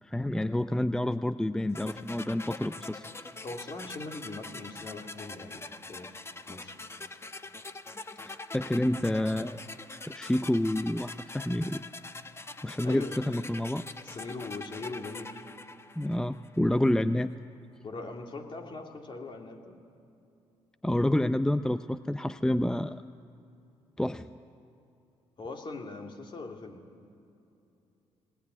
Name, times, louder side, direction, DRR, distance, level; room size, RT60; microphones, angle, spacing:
voice 1, 0.0-3.1 8.3-9.6 10.1-11.9 12.6-13.9 16.0-17.3 20.8-23.0 24.0-24.3, left 1 dB, 5° left, 12 dB, 0.5 m, -28 dB
sound 1, 1.7-16.7, left 3 dB, 20° left, 1.1 m, -44 dB
voice 2, 3.4-6.2 6.5-6.8 12.8-13.2 14.0-15.5 17.8-19.8 25.4-26.8, left 3 dB, 45° left, 2 dB, 3.0 m, -41 dB
19.5 x 19.0 x 9.6 m, 2.7 s
supercardioid pair, 65°, 12 cm